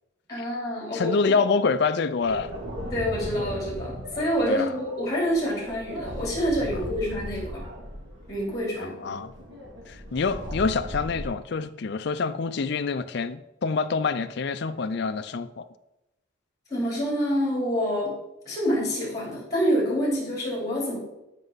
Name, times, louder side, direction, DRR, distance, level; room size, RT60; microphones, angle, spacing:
voice 1, 0.3-1.4 2.9-7.6 8.3-9.2 16.7-18.1 18.5-21.0, equal, 15° left, 3.5 m, -27 dB
voice 2, 0.9-2.5 4.5-4.7 8.8-9.3 9.9-15.7, left 4 dB, 55° left, 0.4 m, -26 dB
sound 1, 2.2-11.2, equal, 60° right, 2.8 m, -38 dB
13.0 x 5.4 x 4.0 m
head